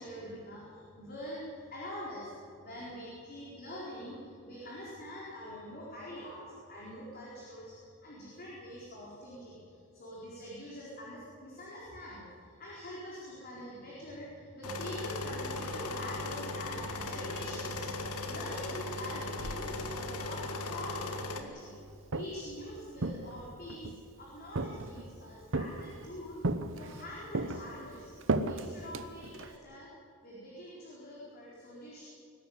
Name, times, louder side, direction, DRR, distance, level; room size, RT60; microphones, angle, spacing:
voice 1, 0.0-23.9 24.2-26.4 26.7-28.1 28.4-29.9 30.2-32.0, equal, 45° left, -6 dB, 4.5 m, -45 dB
sound 1, 14.6-21.4, left 2 dB, 80° left, 1.8 m, -37 dB
Walk footsteps, 21.9-22.5 23.0-24.0 24.6-25.1 25.5-26.1 26.4-27.0 27.3-29.6, right 2 dB, 60° right, 1.0 m, -34 dB
22.0 x 12.5 x 9.5 m, 2.5 s
head